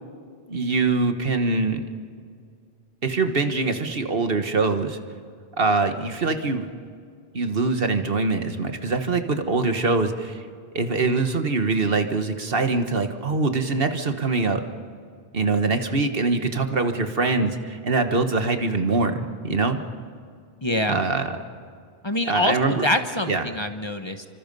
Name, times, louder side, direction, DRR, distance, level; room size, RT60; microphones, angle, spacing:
voice 1, 0.5-1.8 3.0-5.0 5.6-6.7 7.3-10.4 10.7-14.6 15.3-19.8 20.9-21.3 22.3-22.8 23.3-23.5, right 3 dB, 65° right, 7 dB, 1.5 m, -23 dB
voice 2, 20.6-21.0 22.0-24.3, left 1 dB, 25° left, 7 dB, 1.1 m, -25 dB
29.5 x 25.0 x 5.4 m, 2.2 s
omnidirectional pair, 1.1 m